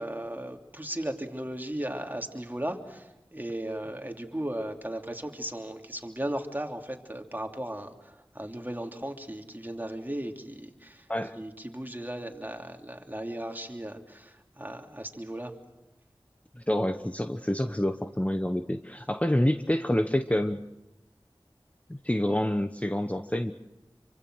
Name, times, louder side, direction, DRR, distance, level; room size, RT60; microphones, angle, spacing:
voice 1, 0.0-11.1 11.3-15.5, right 1 dB, 20° right, 3 dB, 3.0 m, -36 dB
voice 2, 16.6-20.6 21.9-23.5, left 1 dB, 15° left, 7 dB, 1.0 m, -27 dB
26.5 x 25.0 x 6.3 m, 0.98 s
wide cardioid pair, 45°, 9 cm